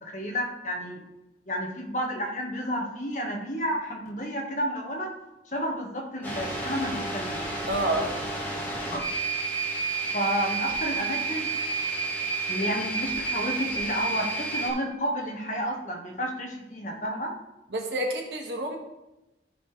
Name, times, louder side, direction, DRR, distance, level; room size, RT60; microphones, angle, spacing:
voice 1, 0.0-1.0 1.5-5.1 5.5-7.5 8.9-9.0 10.1-11.5 12.5-17.3, equal, 45° left, 0 dB, 1.7 m, -31 dB
sound 1, 6.2-14.7, right 3 dB, 10° left, 1.9 m, -30 dB
voice 2, 7.7-8.3 17.7-18.8, right 1 dB, 80° right, 1 dB, 1.8 m, -28 dB
14.5 x 4.9 x 3.4 m, 0.97 s
head